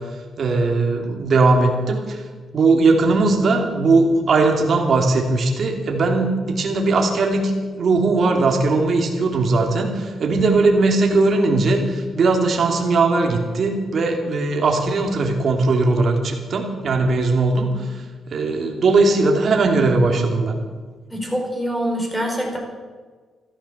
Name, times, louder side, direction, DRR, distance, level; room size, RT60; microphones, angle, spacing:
voice 1, 0.4-2.2 2.5-20.6, right 3 dB, 55° right, 2 dB, 3.0 m, -19 dB
voice 2, 21.1-22.6, equal, 5° left, 1 dB, 4.8 m, -24 dB
14.5 x 13.5 x 7.3 m, 1.5 s
cardioid pair, 110°, 0 cm